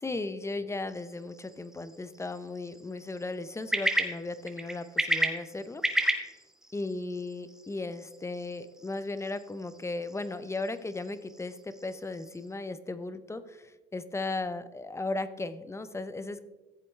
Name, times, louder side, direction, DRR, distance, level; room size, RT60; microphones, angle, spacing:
voice 1, 0.0-6.1 6.7-16.4, left 2 dB, 15° left, 12 dB, 0.7 m, -36 dB
sound 1, 0.9-12.5, right 1 dB, 5° right, 1.5 m, -35 dB
14.5 x 7.7 x 3.3 m, 1.1 s
supercardioid pair, 85°, 16 cm